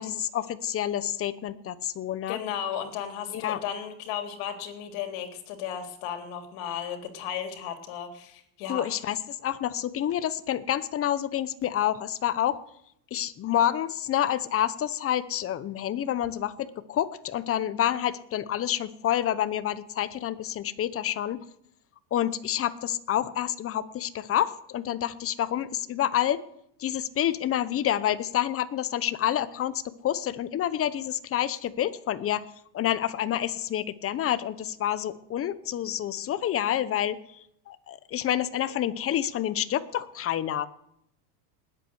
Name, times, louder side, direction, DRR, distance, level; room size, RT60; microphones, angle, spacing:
voice 1, 0.0-2.4 3.3-3.6 8.7-12.6 13.1-21.4 22.1-26.4 26.8-32.5 32.7-40.7, left 11 dB, 30° left, 15 dB, 0.9 m, -28 dB
voice 2, 2.3-8.8, left 9 dB, 65° left, 5 dB, 3.6 m, -34 dB
20.0 x 8.6 x 8.1 m, 0.74 s
supercardioid pair, 135°, 48 cm